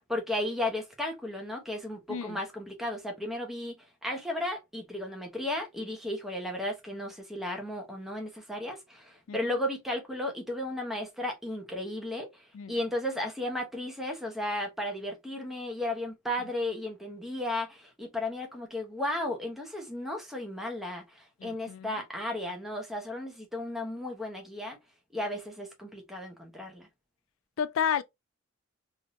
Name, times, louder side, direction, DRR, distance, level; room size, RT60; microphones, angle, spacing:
voice 1, 0.1-3.8 4.0-12.4 12.7-24.8 25.1-26.9, left 1 dB, ahead, 0.9 m, -34 dB
voice 2, 2.1-2.4 9.3-9.6 12.5-12.7 21.4-21.9 27.6-28.0, left 8 dB, 80° left, 0.4 m, -31 dB
3.5 x 2.7 x 2.6 m
head